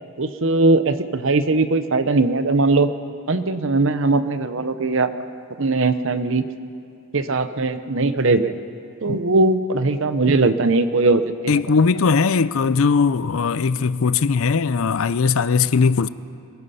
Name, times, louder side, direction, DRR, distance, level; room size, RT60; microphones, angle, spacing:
voice 1, 0.2-2.9 3.3-5.1 5.6-6.5 7.1-8.5 9.0-11.6, right 3 dB, 60° right, 0.8 m, -19 dB
voice 2, 11.5-16.1, left 5 dB, 65° left, 0.5 m, -19 dB
23.0 x 20.0 x 5.7 m
head